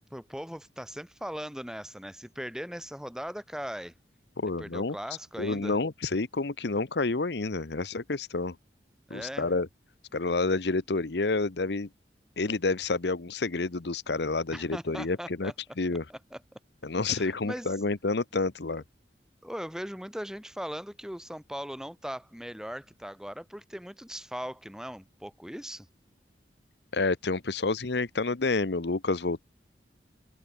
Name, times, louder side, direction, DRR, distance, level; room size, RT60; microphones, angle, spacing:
voice 1, 0.1-3.9 4.6-5.8 9.1-9.5 14.5-15.5 16.1-16.6 17.0-17.7 19.4-25.9, equal, 5° right, 2.3 m, -39 dB
voice 2, 4.4-5.0 5.4-8.6 9.1-9.7 10.1-11.9 12.4-15.5 15.8-16.0 16.8-18.8 26.9-29.4, left 3 dB, 75° left, 0.9 m, -29 dB
open air
head